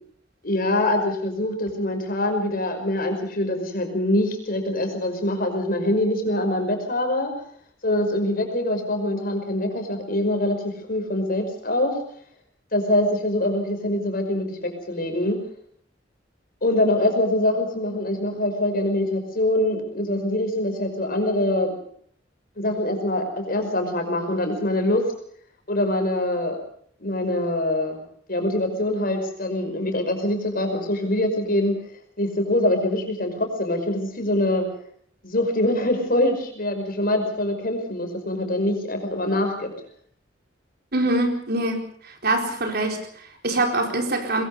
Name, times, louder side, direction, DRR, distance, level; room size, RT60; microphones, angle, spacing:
voice 1, 0.4-7.3 7.8-12.0 12.7-15.4 16.6-21.8 22.6-25.0 25.7-26.6 27.0-28.0 28.3-31.8 32.2-34.7 35.2-39.7, left 1 dB, 50° left, 5 dB, 5.5 m, -24 dB
voice 2, 40.9-44.4, right 2 dB, 55° right, 3 dB, 4.4 m, -24 dB
22.5 x 22.0 x 5.5 m, 0.62 s
head